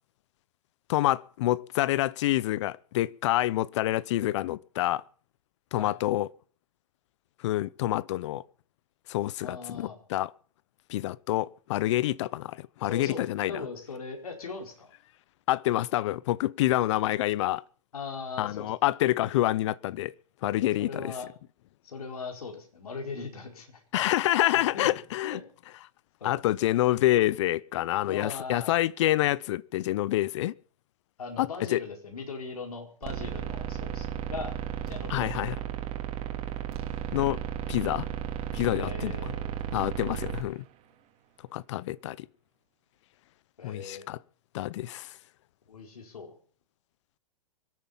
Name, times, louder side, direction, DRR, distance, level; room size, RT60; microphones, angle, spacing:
voice 1, 0.9-5.0 5.7-6.3 7.4-8.4 9.1-10.3 10.9-13.5 15.5-17.6 18.4-20.1 20.4-21.1 23.9-25.4 26.2-30.5 31.4-31.8 35.1-35.6 37.1-37.4 37.7-38.1 38.5-39.2 39.7-40.6 41.5-42.3 43.6-44.2 44.5-45.2, left 15 dB, 55° left, 0.7 m, -27 dB
voice 2, 9.4-10.0 12.8-14.9 17.9-18.7 20.8-21.3 21.8-23.8 24.1-24.2 24.7-24.9 25.2-25.4 26.2-26.4 28.0-28.7 31.2-34.5 34.9-35.3 38.8-39.5 43.6-44.1 45.7-46.4, left 4 dB, 85° left, 4.6 m, -39 dB
sound 1, 33.0-40.4, right 10 dB, 35° right, 3.0 m, -34 dB
24.5 x 9.0 x 5.6 m
hypercardioid pair, 130°, 18 cm